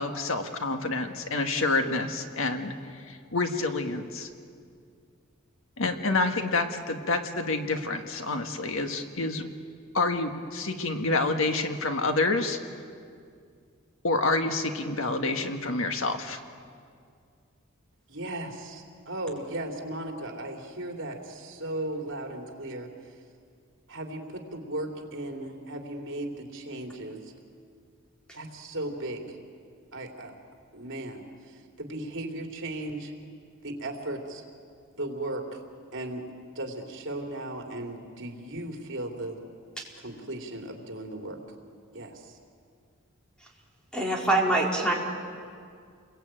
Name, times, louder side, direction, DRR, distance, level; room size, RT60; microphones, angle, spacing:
voice 1, 0.0-4.3 5.8-9.5 9.9-12.6 14.0-16.4, left 3 dB, 70° left, 6 dB, 1.7 m, -28 dB
voice 2, 18.1-22.9 23.9-27.3 28.3-29.4 29.9-30.3 30.7-33.1 33.6-34.4 35.0-35.6 35.9-36.3 36.5-39.4 40.0-41.4 41.9-42.4, right 1 dB, 60° right, 2 dB, 3.3 m, -36 dB
voice 3, 43.9-44.9, right 2 dB, 5° left, -2 dB, 4.5 m, -24 dB
29.0 x 22.0 x 9.0 m, 2.2 s
head